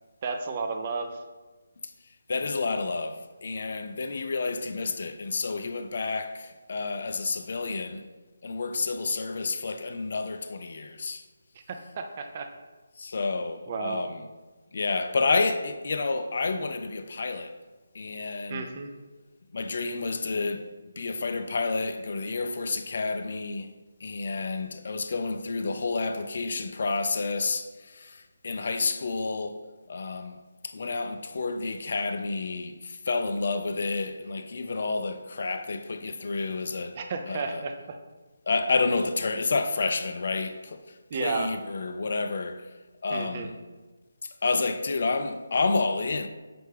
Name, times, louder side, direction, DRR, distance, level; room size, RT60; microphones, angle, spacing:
voice 1, 0.2-1.1 11.7-12.5 13.7-14.0 18.5-18.9 36.9-38.0 41.1-41.5 43.1-43.5, right 4 dB, 35° right, 0.4 m, -32 dB
voice 2, 2.3-3.2 3.4-8.0 8.4-11.2 13.0-14.1 14.7-17.5 18.0-18.7 19.5-20.7 21.0-23.7 24.0-27.7 27.9-28.2 28.4-29.6 29.9-30.4 30.7-37.0 37.3-37.6 38.5-40.8 41.2-42.6 43.0-43.5 44.4-46.3, left 3 dB, 55° left, 0.3 m, -29 dB
5.9 x 2.1 x 3.2 m
figure-of-eight pair, 155°, 0 cm